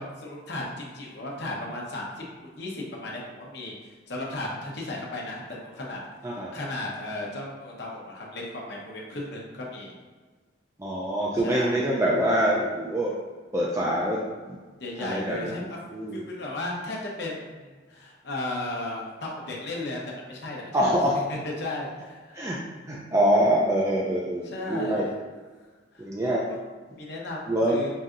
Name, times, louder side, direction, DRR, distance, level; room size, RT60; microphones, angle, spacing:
voice 1, 0.0-3.7 4.1-6.0 6.5-9.9 11.3-11.8 14.8-15.8 16.1-20.6 21.1-22.5 24.4-25.2 25.9-26.6 26.9-27.9, left 2 dB, 55° left, -2 dB, 0.9 m, -35 dB
voice 2, 10.8-13.1 13.5-14.2 15.0-16.2 20.7-21.2 22.3-22.6 22.9-25.1 26.0-26.4 27.5-27.8, right 1 dB, 15° right, -4 dB, 0.4 m, -25 dB
5.4 x 2.7 x 2.4 m, 1.4 s
head